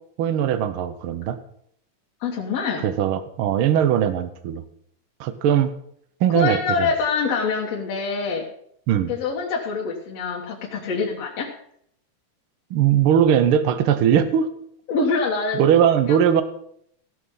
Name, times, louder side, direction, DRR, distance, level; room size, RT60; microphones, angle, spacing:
voice 1, 0.2-1.4 2.8-4.6 5.2-5.7 6.2-6.9 8.9-9.1 12.7-14.5 15.6-16.4, right 9 dB, 70° right, 11 dB, 1.3 m, -20 dB
voice 2, 2.2-2.8 6.3-8.4 9.1-11.5 14.9-15.7 16.1-16.2, left 4 dB, 65° left, -3 dB, 2.3 m, -25 dB
16.0 x 6.6 x 5.5 m, 0.69 s
omnidirectional pair, 3.4 m